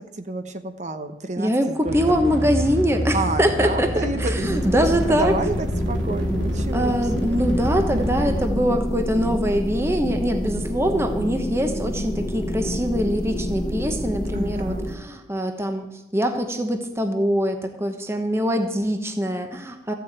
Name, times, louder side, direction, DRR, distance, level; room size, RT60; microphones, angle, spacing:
voice 1, 0.0-2.4 3.1-7.4 7.9-8.4 14.3-14.9, right 2 dB, 40° right, 9 dB, 0.8 m, -30 dB
voice 2, 1.4-3.9 4.2-5.3 6.7-15.8 16.1-19.9, equal, 15° right, 5 dB, 1.0 m, -23 dB
sound 1, 1.9-8.7, equal, 80° right, 2.3 m, -28 dB
sound 2, 4.4-14.9, equal, 25° left, 1.1 m, -28 dB
14.0 x 7.0 x 8.9 m, 0.93 s
head